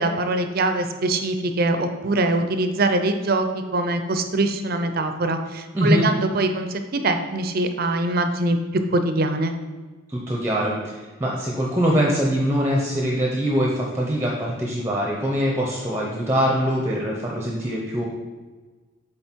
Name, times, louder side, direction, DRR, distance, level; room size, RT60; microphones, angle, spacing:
voice 1, 0.0-8.6 8.9-9.5, right 2 dB, 50° right, 7 dB, 0.5 m, -23 dB
voice 2, 5.7-6.1 10.1-18.1, equal, 10° right, -2 dB, 0.7 m, -23 dB
7.7 x 3.8 x 4.5 m, 1.3 s
head